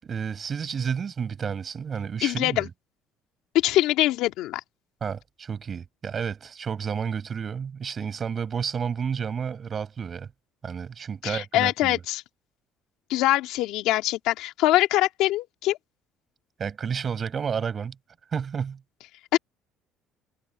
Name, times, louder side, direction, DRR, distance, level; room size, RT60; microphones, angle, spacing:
voice 1, 0.0-2.7 5.0-10.3 10.6-12.0 16.6-18.0 18.3-18.8, right 6 dB, 30° right, 5.9 m, -31 dB
voice 2, 2.2-2.7 3.5-4.6 11.2-12.2 13.1-15.8 19.3-19.4, left 16 dB, 75° left, 2.4 m, -23 dB
cardioid pair, 135°, 0 cm